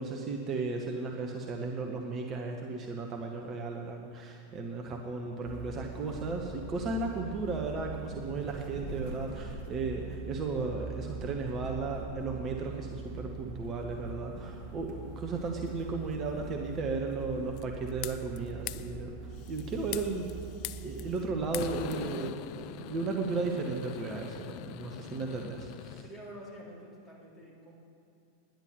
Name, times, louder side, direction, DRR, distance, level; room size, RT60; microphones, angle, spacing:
voice 1, 0.0-19.2 19.5-20.3 20.8-26.0, right 3 dB, 30° right, 2 dB, 1.1 m, -35 dB
sound 1, 5.4-21.9, right 4 dB, 45° right, 1.5 m, -43 dB
sound 2, 17.6-18.4 18.7-18.9 19.4-21.2 21.5-26.1, left 13 dB, 45° left, 0.4 m, -42 dB
voice 2, 26.0-27.7, equal, 15° left, -5 dB, 3.5 m, -48 dB
10.5 x 10.5 x 6.7 m, 2.6 s
figure-of-eight pair, 90°, 0 cm